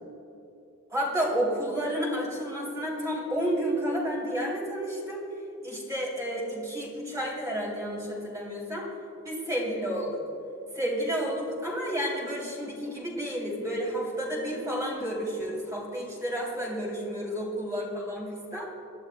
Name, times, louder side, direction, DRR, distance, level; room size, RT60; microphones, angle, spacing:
voice 1, 0.9-5.2 5.6-8.9 9.2-10.2 10.7-18.7, equal, 15° right, -3 dB, 3.0 m, -31 dB
24.0 x 11.0 x 2.2 m, 2.8 s
head